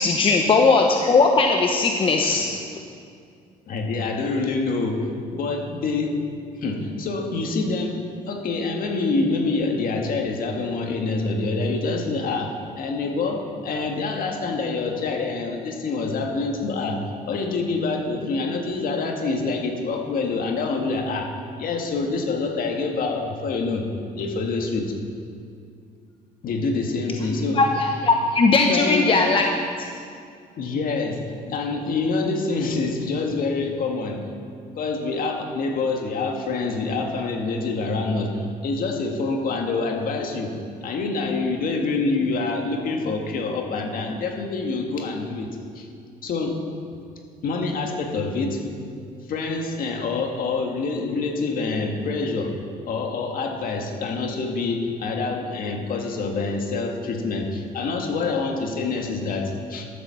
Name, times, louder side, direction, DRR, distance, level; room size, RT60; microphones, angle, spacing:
voice 1, 0.0-2.5 27.6-29.4, left 3 dB, 30° left, 2 dB, 0.9 m, -18 dB
voice 2, 3.7-6.2 6.6-8.0 8.3-21.3 21.6-23.9 24.2-24.9 26.4-27.6 28.7-29.1 30.6-34.3 34.8-40.5 40.8-45.5 45.8-45.9 46.2-46.6 47.4-48.6 49.3-52.5 52.9-59.9, left 3 dB, 55° left, 2 dB, 1.9 m, -26 dB
12.0 x 7.4 x 7.0 m, 2.3 s
cardioid pair, 110°, 17 cm